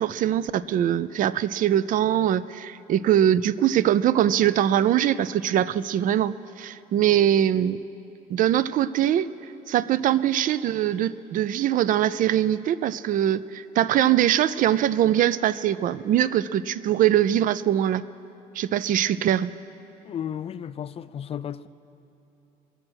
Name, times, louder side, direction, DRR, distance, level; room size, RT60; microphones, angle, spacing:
voice 1, 0.0-7.8 8.3-9.3 9.7-18.0 18.5-19.5, right 11 dB, 55° right, 0.4 m, -22 dB
voice 2, 20.0-21.7, left 9 dB, 35° left, 0.4 m, -33 dB
22.5 x 7.6 x 6.2 m
cardioid pair, 110°, 17 cm